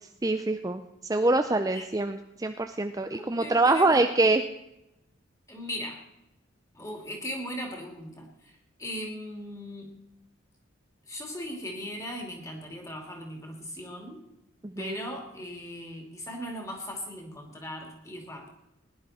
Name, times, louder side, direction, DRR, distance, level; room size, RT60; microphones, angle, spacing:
voice 1, 0.2-0.8 1.1-4.4 14.6-14.9, right 2 dB, 15° right, 7 dB, 0.5 m, -24 dB
voice 2, 3.2-4.1 5.5-6.0 6.7-10.0 11.1-14.2 14.8-18.5, equal, 15° left, 2 dB, 2.6 m, -38 dB
19.5 x 11.0 x 4.2 m, 0.89 s
head